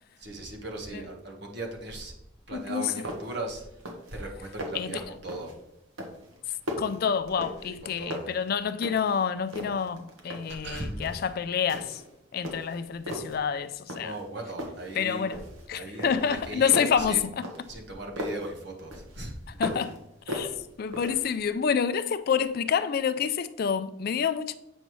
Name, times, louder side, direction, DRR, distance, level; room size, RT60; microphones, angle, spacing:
voice 1, 0.2-2.1 2.5-3.7 4.1-5.5 7.6-8.3 10.6-11.0 14.0-15.3 15.7-17.2 17.7-19.3, right 2 dB, 55° right, 1.3 m, -38 dB
voice 2, 2.5-2.9 4.7-5.0 6.8-12.0 12.3-14.1 14.9-15.4 15.7-17.5 19.6-20.0 20.3-20.5 20.8-24.5, left 7 dB, 45° left, 0.3 m, -28 dB
sound 1, 2.6-2.7 3.0-3.4 3.7-4.2 4.4-4.9 5.3-5.6 6.0-7.8 8.1-9.2 9.5-10.6 11.0-11.3 11.7-12.1 12.4-13.4 13.9-14.3 14.6-15.7 16.0-18.5 18.9-20.0 20.3-21.3, equal, 85° right, 1.2 m, -37 dB
7.9 x 5.3 x 3.1 m
head